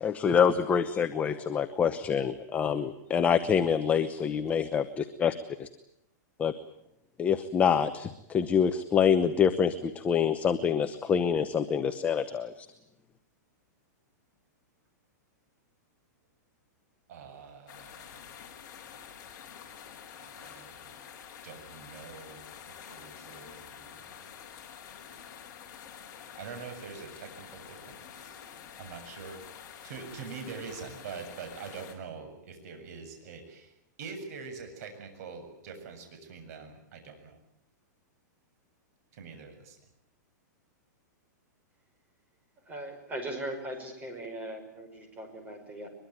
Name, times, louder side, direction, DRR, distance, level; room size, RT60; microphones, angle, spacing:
voice 1, 0.0-5.3 5.6-5.7 6.4-6.5 7.2-12.5, left 7 dB, 15° left, 8 dB, 0.9 m, -26 dB
voice 2, 17.1-18.3 20.2-21.0 21.4-24.1 26.4-28.4 28.8-29.4 29.8-33.7 34.0-37.4 39.1-39.8, right 5 dB, 55° right, 6 dB, 7.3 m, -44 dB
sound 1, 17.7-31.9, left 8 dB, 35° left, 5.6 m, -48 dB
voice 3, 42.7-45.9, right 1 dB, 15° right, 5 dB, 5.4 m, -39 dB
23.0 x 23.0 x 9.2 m, 0.79 s
supercardioid pair, 160°, 10 cm